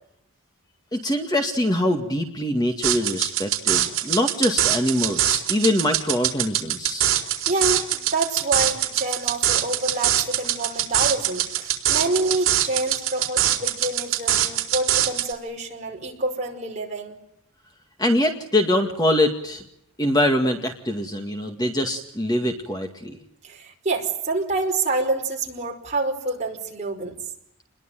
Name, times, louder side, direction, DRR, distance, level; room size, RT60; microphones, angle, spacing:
voice 1, 0.9-7.1 18.0-19.6 20.0-23.2, left 1 dB, 15° left, 4 dB, 2.0 m, -23 dB
sound 1, 2.8-15.3, right 12 dB, 60° right, 4.0 m, -23 dB
voice 2, 7.5-17.1 23.4-27.2, right 2 dB, 30° right, 1 dB, 5.1 m, -27 dB
28.5 x 21.5 x 9.2 m, 0.80 s
head